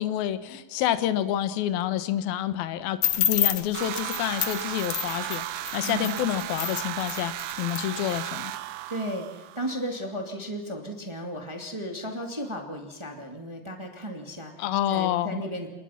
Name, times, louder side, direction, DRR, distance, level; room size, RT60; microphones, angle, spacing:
voice 1, 0.0-5.4 5.7-7.3 7.6-8.5 14.6-15.4, left 12 dB, 70° left, 11 dB, 2.5 m, -28 dB
sound 1, 3.0-8.2, left 11 dB, 90° left, 1.7 m, -29 dB
sound 2, 3.7-9.9, right 14 dB, 80° right, 2.3 m, -35 dB
voice 2, 5.8-6.2 8.9-15.7, right 1 dB, 35° right, 2 dB, 0.4 m, -35 dB
27.5 x 21.0 x 5.8 m, 1.1 s
omnidirectional pair, 5.5 m